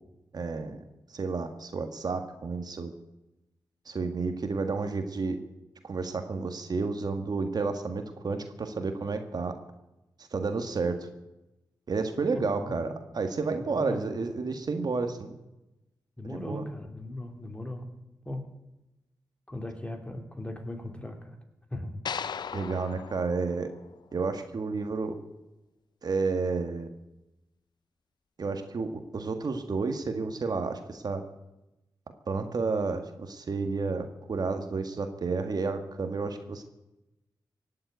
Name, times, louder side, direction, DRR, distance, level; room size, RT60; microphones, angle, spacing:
voice 1, 0.3-0.8 1.1-2.9 3.8-5.4 5.8-9.6 10.2-11.1 11.9-15.3 16.3-16.6 22.5-23.7 24.1-25.1 26.0-26.9 28.4-31.2 32.3-36.6, right 4 dB, 60° right, 7 dB, 1.7 m, -31 dB
voice 2, 12.3-13.0 13.6-14.1 16.2-17.9 18.2-18.5 19.5-21.4 21.7-22.0, left 1 dB, 15° left, 4 dB, 2.9 m, -38 dB
sound 1, 22.1-24.4, left 7 dB, 70° left, 0.6 m, -38 dB
17.0 x 7.7 x 9.5 m, 0.95 s
cardioid pair, 55°, 8 cm